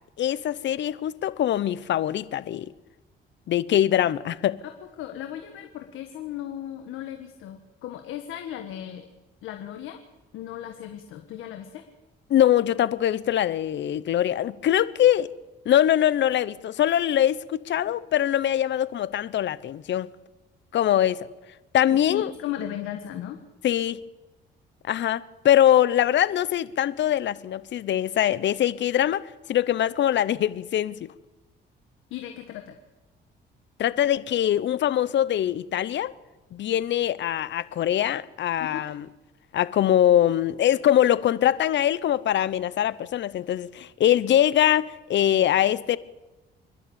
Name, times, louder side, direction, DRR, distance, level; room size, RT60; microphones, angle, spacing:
voice 1, 0.2-2.7 3.5-4.6 12.3-15.3 15.6-20.1 20.7-21.3 21.7-22.3 23.6-24.0 24.8-31.1 33.8-36.1 36.5-39.0 39.5-46.0, left 11 dB, 65° left, 0.9 m, -23 dB
voice 2, 4.6-9.1 9.4-10.0 10.3-11.8 21.9-23.4 32.1-32.8 38.6-38.8, left 11 dB, 85° left, 1.5 m, -36 dB
26.5 x 12.0 x 8.8 m
cardioid pair, 90°, 20 cm